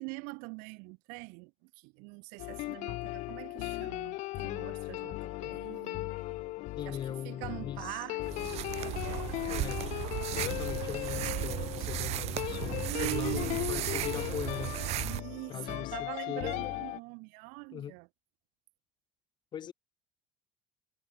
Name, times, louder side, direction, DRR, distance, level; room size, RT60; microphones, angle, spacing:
voice 1, 0.0-6.1 6.9-9.3 12.8-13.6 15.0-18.1, right 33 dB, 80° right, 7.0 m, -43 dB
sound 1, 2.4-17.0, left 20 dB, 60° left, 2.6 m, -37 dB
voice 2, 6.8-8.0 9.5-9.8 10.4-14.8 15.5-16.7 17.7-17.9 19.5-19.7, left 9 dB, 35° left, 7.9 m, -40 dB
sound 2, 8.2-15.2, right 16 dB, 50° right, 1.8 m, -35 dB
cardioid pair, 160°, 13 cm